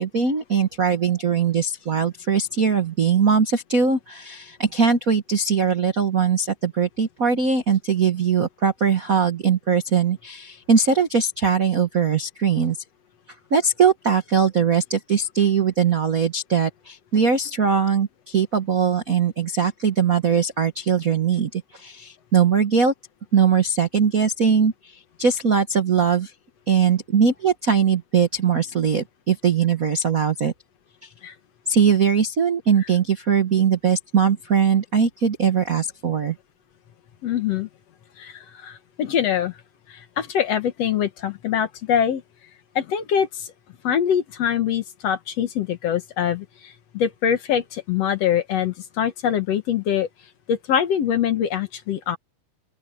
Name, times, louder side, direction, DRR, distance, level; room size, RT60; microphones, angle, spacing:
voice 1, 0.0-12.8 13.5-22.9 23.3-24.7 25.2-26.3 26.7-30.5 31.7-36.3, right 6 dB, 70° right, 0.8 m, -20 dB
voice 2, 37.2-37.7 38.2-39.5 39.9-42.2 42.8-43.5 43.8-50.1 50.5-52.2, left 9 dB, 60° left, 2.1 m, -24 dB
open air
omnidirectional pair, 3.7 m